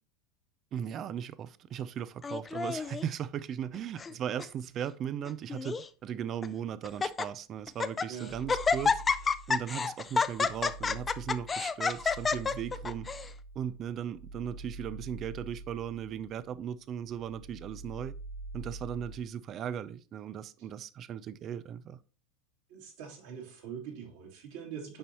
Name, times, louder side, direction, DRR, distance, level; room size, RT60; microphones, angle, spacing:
voice 1, 0.7-13.1 13.6-18.1 18.5-22.0, right 9 dB, 40° right, 0.4 m, -37 dB
Laughter, 2.2-3.0 3.7-4.1 4.4-4.5 5.2-5.9 6.4-6.5 6.8-7.3 7.7-8.1 8.5-13.3, left 5 dB, 20° left, 0.5 m, -29 dB
sound 1, 8.3-9.7 10.1-16.7 17.0-19.3, right 2 dB, 25° right, 1.7 m, -45 dB
voice 2, 22.7-25.0, right 7 dB, 65° right, 2.7 m, -43 dB
8.6 x 5.3 x 2.9 m
hypercardioid pair, 85°, 0 cm